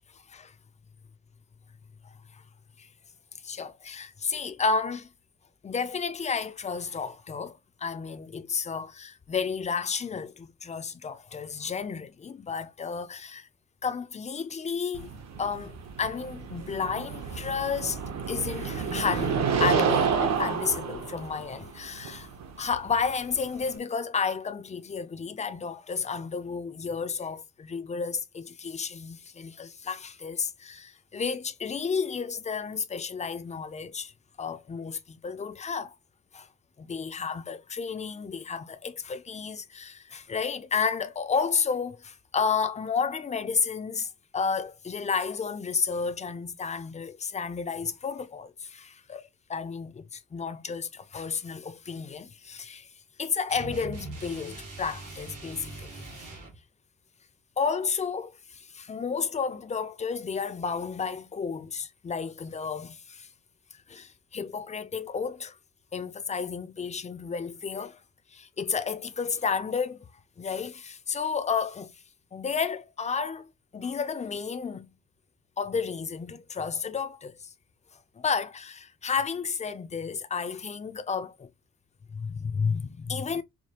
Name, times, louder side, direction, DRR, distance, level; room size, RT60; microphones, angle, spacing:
voice 1, 3.4-5.1 5.6-13.5 13.8-15.1 15.4-18.0 18.3-22.3 22.6-34.1 34.4-36.0 36.3-36.5 36.8-52.9 53.2-56.0 57.6-63.3 63.9-65.6 65.9-68.0 68.3-70.1 70.4-71.9 72.3-73.5 73.7-74.9 75.6-77.4 78.2-81.5 82.1-83.4, left 5 dB, 25° left, 0.4 m, -32 dB
sound 1, 14.9-23.8, right 6 dB, 60° right, 0.8 m, -30 dB
sound 2, 53.5-56.6, right 2 dB, 75° right, 1.6 m, -41 dB
4.8 x 2.2 x 2.9 m
wide cardioid pair, 155°, 31 cm